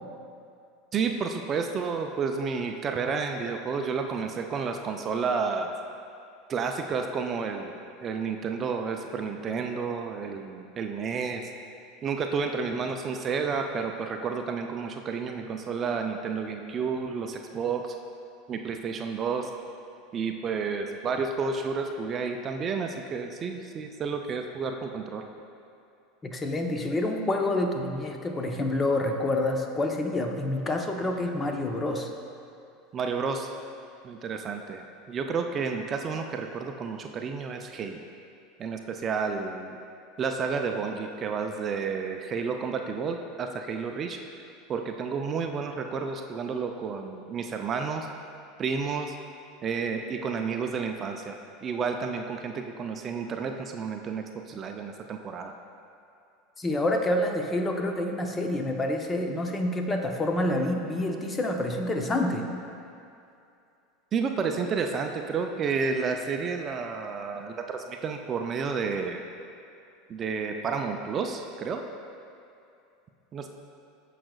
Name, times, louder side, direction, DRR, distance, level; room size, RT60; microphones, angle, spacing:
voice 1, 0.9-5.7 6.5-7.7 8.0-11.5 12.0-17.9 18.5-19.5 20.1-25.3 32.9-33.5 34.0-38.0 38.6-39.8 40.2-44.2 44.7-48.1 48.6-49.1 49.6-55.5 64.1-69.2 70.1-71.8 73.3-73.5, right 5 dB, 35° right, 4 dB, 0.5 m, -31 dB
voice 2, 26.2-32.1 56.6-62.5, left 1 dB, 20° left, 3 dB, 0.8 m, -27 dB
14.5 x 5.0 x 2.4 m, 2.6 s
hypercardioid pair, 80°, 0 cm